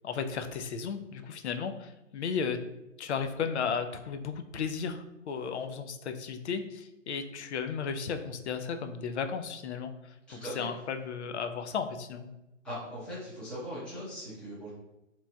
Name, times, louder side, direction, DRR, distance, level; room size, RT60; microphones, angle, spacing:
voice 1, 0.0-2.6 3.0-12.3, left 6 dB, 60° left, 7 dB, 0.5 m, -34 dB
voice 2, 10.3-10.7 12.6-14.7, equal, ahead, -10 dB, 0.7 m, -40 dB
3.9 x 3.0 x 2.2 m, 0.96 s
figure-of-eight pair, 130°, 38 cm